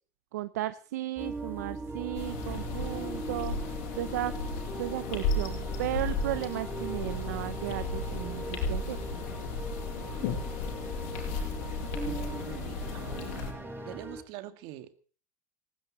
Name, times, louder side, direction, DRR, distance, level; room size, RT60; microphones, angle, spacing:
voice 1, 0.3-4.3 4.8-9.1, right 15 dB, 85° right, 14 dB, 0.7 m, -35 dB
sound 1, 1.2-14.2, right 2 dB, 25° right, 5.9 m, -40 dB
sound 2, 2.1-13.5, left 4 dB, 75° left, 5.8 m, -35 dB
voice 2, 12.0-13.4 13.9-15.0, right 14 dB, 65° right, 12 dB, 1.8 m, -44 dB
19.0 x 16.5 x 4.0 m, 0.41 s
supercardioid pair, 95°, 9 cm